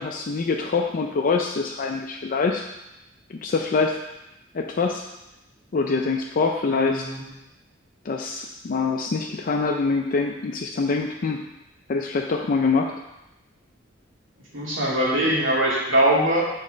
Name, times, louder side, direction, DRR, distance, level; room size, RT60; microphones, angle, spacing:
voice 1, 0.0-2.6 3.3-4.0 4.5-5.0 5.7-7.0 8.0-11.4 11.9-12.9, left 4 dB, 45° left, 2 dB, 0.4 m, -24 dB
voice 2, 6.7-7.2 14.5-16.4, right 1 dB, 75° right, -6 dB, 2.4 m, -22 dB
6.4 x 4.2 x 5.0 m, 0.93 s
head